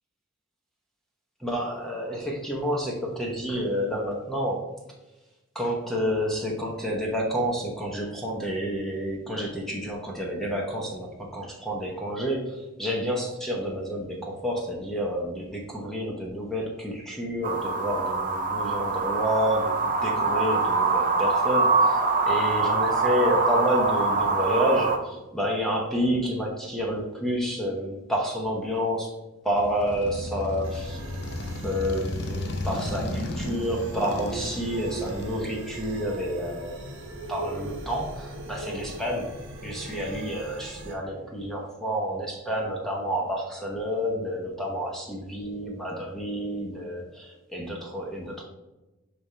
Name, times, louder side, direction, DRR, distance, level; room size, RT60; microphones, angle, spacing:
voice 1, 1.4-4.6 5.5-29.1 29.4-31.0 31.6-36.7 37.3-48.4, equal, ahead, -2 dB, 0.9 m, -29 dB
sound 1, 17.4-25.0, right 3 dB, 40° right, 0.7 m, -24 dB
Motorcycle, 29.5-36.2, left 2 dB, 50° left, 0.6 m, -35 dB
sound 2, 30.6-40.9, right 2 dB, 60° right, 1.1 m, -39 dB
5.2 x 4.3 x 4.3 m, 1.1 s
head